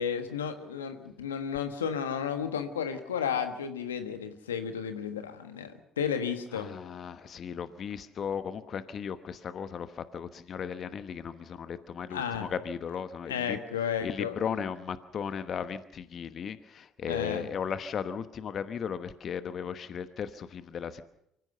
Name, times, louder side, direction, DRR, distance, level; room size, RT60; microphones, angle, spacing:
voice 1, 0.0-6.7 12.1-12.5 13.3-14.6 17.0-17.5, left 7 dB, 90° left, 8 dB, 1.4 m, -33 dB
voice 2, 6.5-13.6 14.0-21.0, left 7 dB, 50° left, 12 dB, 1.1 m, -36 dB
24.5 x 15.5 x 6.8 m, 0.77 s
hypercardioid pair, 55°, 0 cm